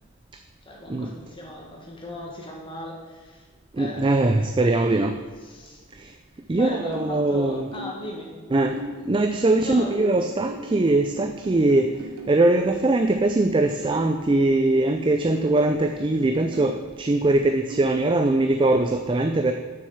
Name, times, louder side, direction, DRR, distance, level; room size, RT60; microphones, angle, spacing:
voice 1, 0.6-3.4 3.7-4.6 5.4-5.8 6.6-8.3 9.6-10.1 19.3-19.5, left 1 dB, 25° left, -1 dB, 1.7 m, -37 dB
voice 2, 3.7-5.2 6.0-6.1 6.5-7.7 8.5-12.0 12.3-19.5, right 2 dB, 20° right, 6 dB, 0.3 m, -21 dB
sound 1, 6.7-8.1 8.5-12.4 13.8-16.8 17.2-18.8, equal, 80° right, 1.4 m, -39 dB
6.9 x 6.3 x 7.1 m, 1.4 s
head